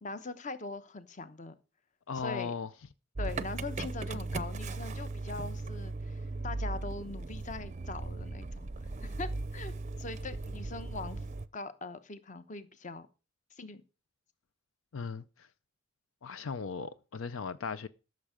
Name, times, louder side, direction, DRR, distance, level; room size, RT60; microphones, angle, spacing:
voice 1, 0.0-1.5 2.1-2.5 3.2-9.7 10.0-11.2 11.5-13.1 13.5-13.8, left 3 dB, 40° left, 0.9 m, -42 dB
voice 2, 2.1-2.7 14.9-15.2 16.2-17.9, left 5 dB, 75° left, 0.5 m, -37 dB
Motor vehicle (road) / Engine starting, 3.1-11.5, right 3 dB, 35° right, 0.5 m, -37 dB
13.5 x 6.5 x 5.1 m
head